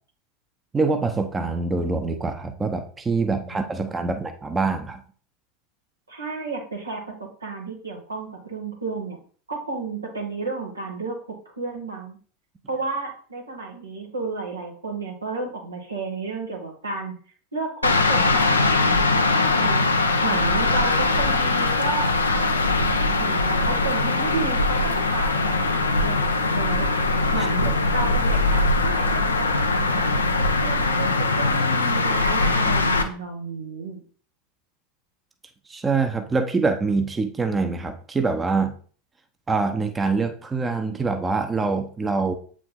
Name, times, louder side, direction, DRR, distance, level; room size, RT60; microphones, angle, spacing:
voice 1, 0.7-5.0 35.7-38.7 39.5-42.3, right 4 dB, 20° right, 6 dB, 0.9 m, -24 dB
voice 2, 6.1-9.2 9.5-11.2 11.5-12.2 12.7-17.1 17.5-30.1 30.6-31.1 31.4-34.0, right 3 dB, 90° right, -1 dB, 2.2 m, -32 dB
sound 1, 17.8-33.0, left 2 dB, 90° left, 0.8 m, -21 dB
7.7 x 5.0 x 3.8 m, 0.43 s
figure-of-eight pair, 85°, 0 cm